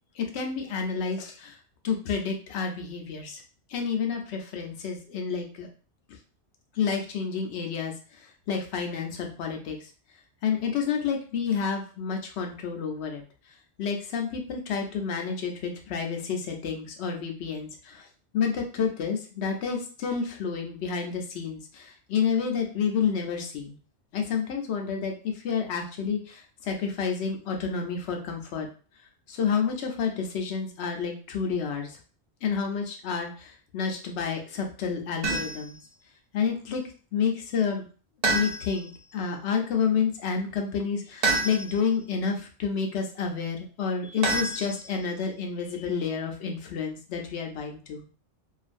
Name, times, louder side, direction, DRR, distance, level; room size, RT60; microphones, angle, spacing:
voice 1, 0.2-1.6 1.8-3.4 3.7-5.7 6.7-9.8 10.4-13.2 13.8-18.1 18.3-23.8 24.1-28.7 29.3-32.0 32.4-35.8 36.3-36.8 37.1-37.8 38.3-48.0, left 6 dB, 70° left, 3 dB, 0.8 m, -29 dB
sound 1, 35.2-35.8 38.2-39.0 41.2-41.9 44.2-45.1, right 3 dB, 55° right, 0.9 m, -28 dB
2.5 x 2.4 x 2.5 m, 0.39 s
omnidirectional pair, 1.2 m